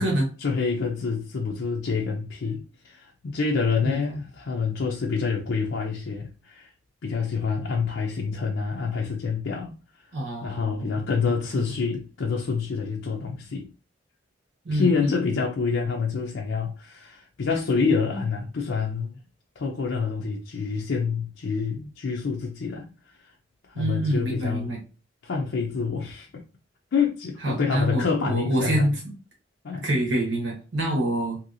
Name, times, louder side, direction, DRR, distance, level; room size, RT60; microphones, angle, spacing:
voice 1, 0.4-6.7 7.0-9.7 10.4-13.7 14.7-19.2 19.6-22.9 23.2-23.3 23.7-24.7 25.2-26.4 26.9-28.9 29.6-29.9, left 5 dB, 70° left, 0.5 m, -27 dB
voice 2, 10.1-11.0 11.3-11.6 14.6-15.1 23.7-24.8 27.4-29.0 29.8-31.4, right 1 dB, 65° right, 1.2 m, -26 dB
2.8 x 2.7 x 2.6 m
head